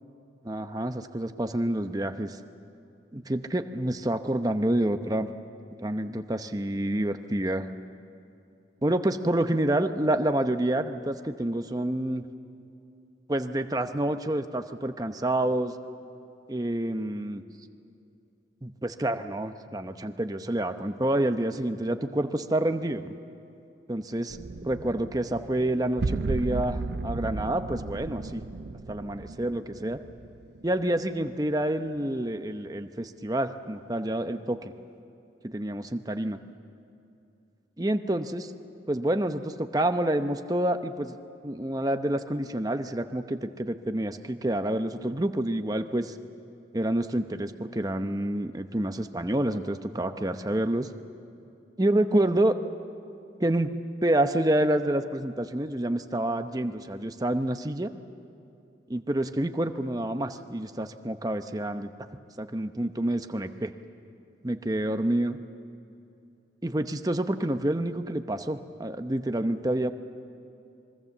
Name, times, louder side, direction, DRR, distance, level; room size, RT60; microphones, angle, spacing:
voice 1, 0.4-2.4 3.1-5.3 5.8-7.7 8.8-12.2 13.3-15.7 16.5-17.4 18.6-23.2 23.9-28.4 28.9-30.0 30.6-34.7 35.4-36.4 37.8-38.5 38.9-41.1 41.4-46.2 46.7-50.9 51.8-52.6 53.4-53.7 54.0-57.9 58.9-61.9 62.4-63.7 64.4-65.4 66.6-69.9, right 1 dB, 20° right, 8 dB, 0.8 m, -28 dB
sound 1, 24.3-31.1, right 3 dB, 65° right, 0.5 m, -35 dB
26.0 x 22.5 x 7.3 m, 2.6 s
head